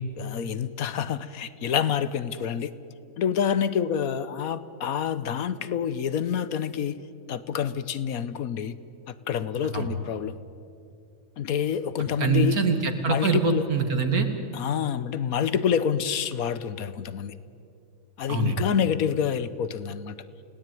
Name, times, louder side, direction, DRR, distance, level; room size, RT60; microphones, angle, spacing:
voice 1, 0.2-2.7 3.2-7.0 7.3-8.7 9.3-10.4 11.4-12.6 13.1-13.7 14.5-17.3 18.2-20.2, left 8 dB, 70° left, 15 dB, 1.4 m, -27 dB
voice 2, 12.2-14.3 18.3-18.6, right 5 dB, 70° right, 6 dB, 2.6 m, -24 dB
30.0 x 18.0 x 9.2 m, 2.5 s
omnidirectional pair, 1.6 m